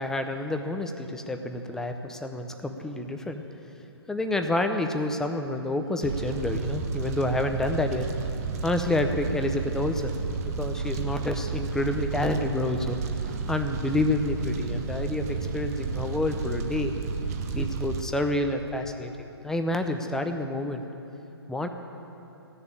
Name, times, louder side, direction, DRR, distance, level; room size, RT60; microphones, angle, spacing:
voice 1, 0.0-3.4 4.1-8.1 8.6-10.1 10.6-13.0 13.5-16.9 17.6-20.8 21.5-21.7, left 2 dB, 5° left, 5 dB, 0.6 m, -28 dB
Fire, 6.0-18.0, right 5 dB, 35° right, 1.0 m, -31 dB
15.5 x 6.9 x 8.8 m, 3.0 s
figure-of-eight pair, 135°, 14 cm